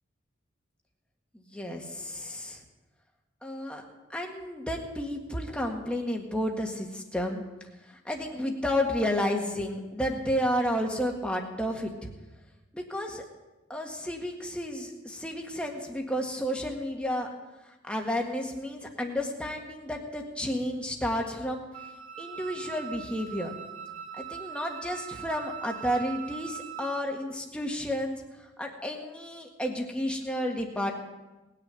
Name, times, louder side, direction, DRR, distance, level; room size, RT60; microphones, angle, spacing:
voice 1, 1.3-2.6 3.4-3.8 4.1-7.4 7.9-12.1 12.7-13.2 13.7-17.3 17.8-21.7 22.2-23.5 24.1-30.9, equal, 5° left, 1 dB, 1.7 m, -31 dB
Wind instrument woodwind instrument, 21.7-27.1, right 9 dB, 40° right, 3.8 m, -41 dB
19.5 x 6.6 x 9.1 m, 1.1 s
head